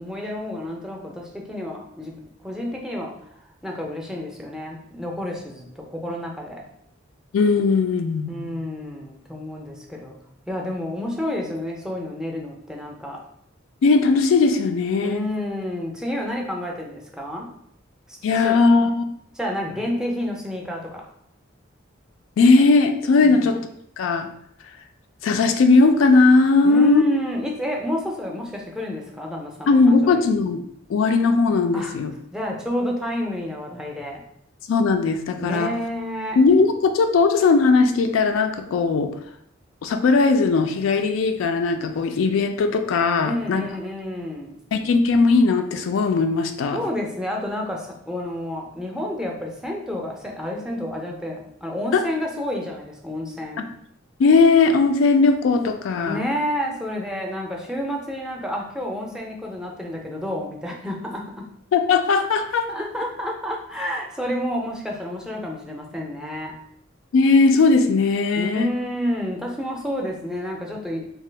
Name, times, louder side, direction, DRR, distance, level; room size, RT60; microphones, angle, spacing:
voice 1, 0.0-2.1 2.4-3.1 3.6-6.6 8.3-10.2 10.5-13.2 15.0-17.5 18.1-18.2 18.4-18.6 19.3-21.0 23.2-23.5 26.6-30.3 31.7-31.9 32.3-34.2 35.4-36.4 43.2-44.6 46.7-53.6 56.0-61.2 62.7-66.5 68.4-71.1, equal, 5° right, -1 dB, 0.4 m, -29 dB
voice 2, 7.3-8.6 13.8-15.2 18.2-19.0 22.4-23.6 24.0-24.3 25.2-27.0 29.7-30.6 30.9-32.1 34.7-35.7 36.4-39.1 39.8-43.7 44.7-46.8 51.9-52.0 54.2-56.2 61.7-62.7 67.1-68.7, left 4 dB, 90° left, 6 dB, 0.3 m, -18 dB
2.7 x 2.2 x 3.3 m, 0.71 s
head